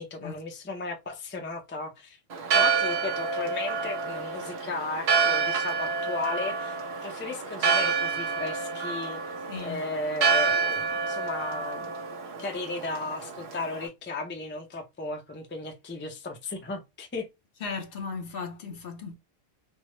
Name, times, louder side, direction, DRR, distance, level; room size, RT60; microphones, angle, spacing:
voice 1, 0.0-2.2 2.5-6.8 7.0-9.2 9.6-11.9 12.4-17.3, left 3 dB, 15° left, 0.5 m, -35 dB
Church bell, 2.3-13.9, right 5 dB, 75° right, 1.0 m, -28 dB
voice 2, 9.5-9.8 17.6-19.1, left 5 dB, 65° left, 0.9 m, -36 dB
3.4 x 2.0 x 2.9 m
omnidirectional pair, 1.1 m